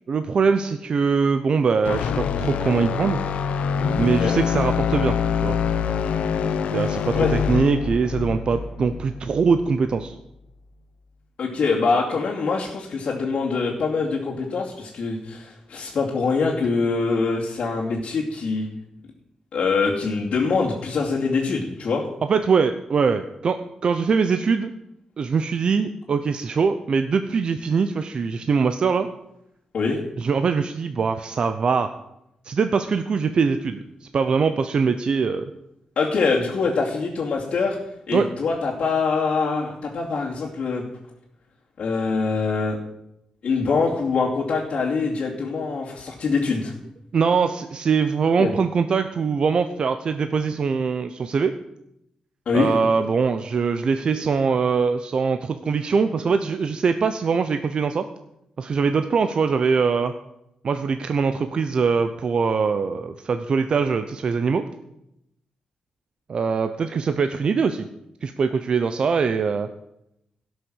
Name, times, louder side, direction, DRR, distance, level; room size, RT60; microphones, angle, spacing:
voice 1, 0.1-3.2 4.0-5.2 5.4-5.6 6.7-10.1 22.3-24.7 25.2-29.1 30.2-31.9 32.4-35.5 38.1-38.3 47.1-51.5 52.5-58.1 58.6-60.1 60.6-64.6 66.3-67.9 68.2-69.7, right 5 dB, 50° right, 9 dB, 0.7 m, -22 dB
sound 1, 1.8-10.0, left 7 dB, 85° left, 0.8 m, -25 dB
voice 2, 11.4-18.7 19.5-22.0 29.7-30.0 36.0-37.8 38.1-40.8 41.8-42.8 43.4-46.7 48.4-48.5 52.5-52.7, left 4 dB, 55° left, -6 dB, 2.5 m, -24 dB
16.5 x 6.4 x 6.4 m, 0.82 s
wide cardioid pair, 135°, 2 cm